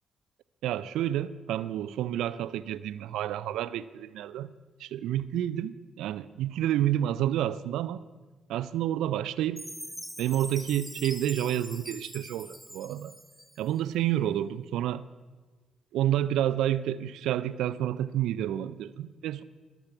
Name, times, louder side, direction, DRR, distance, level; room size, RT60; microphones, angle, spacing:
voice 1, 0.6-4.5 4.8-8.0 8.5-9.6 10.2-13.1 13.6-15.0 15.9-19.4, right 12 dB, 75° right, 16 dB, 0.4 m, -29 dB
Chime, 9.6-13.8, equal, 5° left, 1.3 m, -43 dB
21.0 x 8.2 x 5.9 m, 1.3 s
hypercardioid pair, 45°, 0 cm